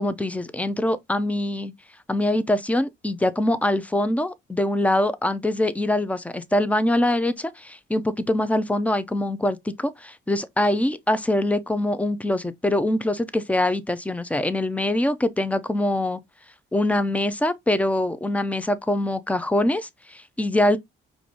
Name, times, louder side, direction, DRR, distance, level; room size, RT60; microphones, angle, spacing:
voice 1, 0.0-1.7 2.1-16.2 16.7-20.8, left 1 dB, 5° left, 0.6 m, -23 dB
4.8 x 2.6 x 3.6 m
cardioid pair, 90°, 20 cm